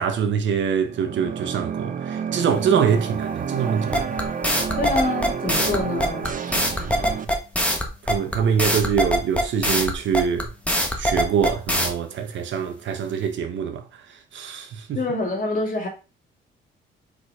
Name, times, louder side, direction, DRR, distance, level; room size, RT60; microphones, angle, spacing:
voice 1, 0.0-4.2 6.5-7.2 8.0-10.5 11.0-13.8 14.3-15.0, right 7 dB, 70° right, 1.2 m, -24 dB
sound 1, 0.8-7.2, right 7 dB, 45° right, 0.8 m, -30 dB
sound 2, 3.9-11.9, equal, 5° left, 1.5 m, -22 dB
voice 2, 4.8-6.3 14.9-15.9, left 3 dB, 45° left, 2.6 m, -26 dB
5.1 x 4.0 x 5.0 m
cardioid pair, 90°, 20 cm